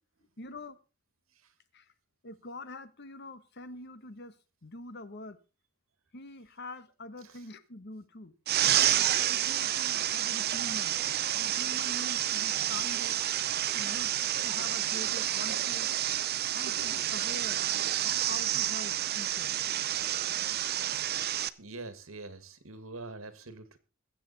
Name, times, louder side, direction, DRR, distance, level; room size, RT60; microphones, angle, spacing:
voice 1, 0.4-0.8 1.7-1.9 2.2-4.3 4.6-5.4 6.1-8.3 9.0-11.0 11.3-13.2 13.7-14.1 14.4-15.9 16.5-17.6 18.0-19.6, left 2 dB, 55° left, 1.3 m, -44 dB
sound 1, 8.5-21.5, right 12 dB, 50° right, 0.6 m, -29 dB
voice 2, 20.8-21.1 21.6-23.8, right 3 dB, 85° right, 1.8 m, -45 dB
22.5 x 7.8 x 4.1 m
head